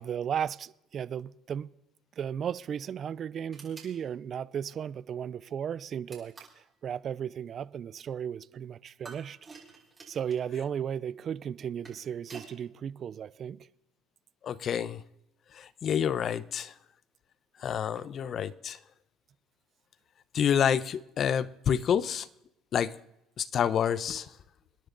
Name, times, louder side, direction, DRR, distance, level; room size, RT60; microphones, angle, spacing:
voice 1, 0.0-1.7 2.2-9.4 10.1-13.7, right 8 dB, 45° right, 0.5 m, -35 dB
sound 1, 3.5-4.0 6.1-6.6 9.0-10.4 11.6-12.5, right 4 dB, 25° right, 5.8 m, -49 dB
voice 2, 14.4-15.0 15.5-16.7 17.6-18.8 20.3-22.3 22.7-22.9 23.4-24.3, left 8 dB, 50° left, 0.8 m, -28 dB
27.5 x 10.5 x 4.0 m
supercardioid pair, 95°, 0 cm